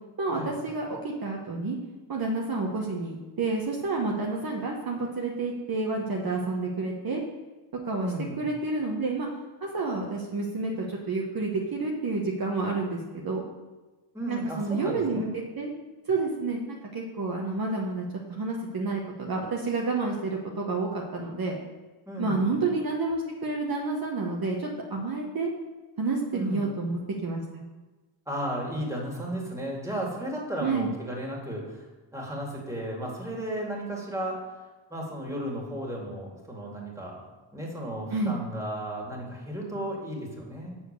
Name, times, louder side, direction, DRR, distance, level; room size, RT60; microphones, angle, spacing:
voice 1, 0.2-1.8 2.1-7.2 7.8-8.1 8.4-9.3 9.6-13.4 14.3-15.7 16.1-21.6 22.2-25.5 26.0-27.6 30.6-30.9 38.1-38.3, right 3 dB, 45° right, -1 dB, 1.1 m, -29 dB
voice 2, 8.0-8.4 14.1-15.3 22.1-22.6 26.3-26.7 28.3-31.9 32.1-34.4 34.9-37.2 37.5-40.8, right 1 dB, 5° right, -2 dB, 2.3 m, -34 dB
7.1 x 4.4 x 6.7 m, 1.2 s
cardioid pair, 85°, 50 cm